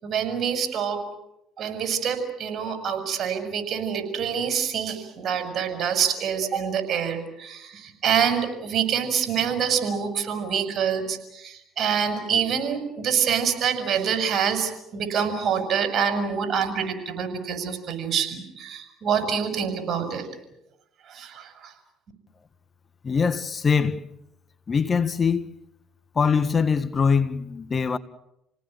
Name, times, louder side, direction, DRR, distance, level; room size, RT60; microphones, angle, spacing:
voice 1, 0.0-1.0 1.6-20.2 21.1-21.7, right 7 dB, 50° right, 6.6 m, -26 dB
voice 2, 23.0-24.0 24.7-25.5 26.1-28.0, left 5 dB, 35° left, 1.5 m, -22 dB
29.0 x 18.5 x 9.1 m
supercardioid pair, 75°, 0 cm